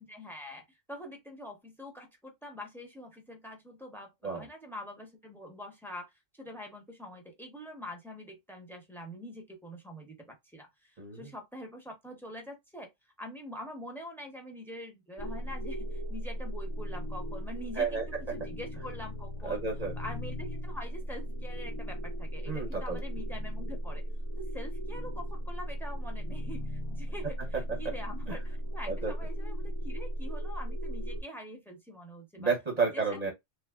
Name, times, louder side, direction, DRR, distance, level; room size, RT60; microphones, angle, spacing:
voice 1, 0.0-12.9 13.2-18.0 18.3-19.6 20.0-24.0 24.4-32.5 32.8-33.2, left 1 dB, ahead, 0.8 m, -45 dB
voice 2, 11.0-11.3 17.8-18.0 19.4-19.9 22.5-23.0 28.3-28.4 28.9-29.1 32.4-33.3, right 4 dB, 40° right, 0.8 m, -31 dB
sound 1, 15.2-31.2, equal, 40° left, 0.4 m, -37 dB
3.1 x 2.1 x 3.5 m
omnidirectional pair, 1.2 m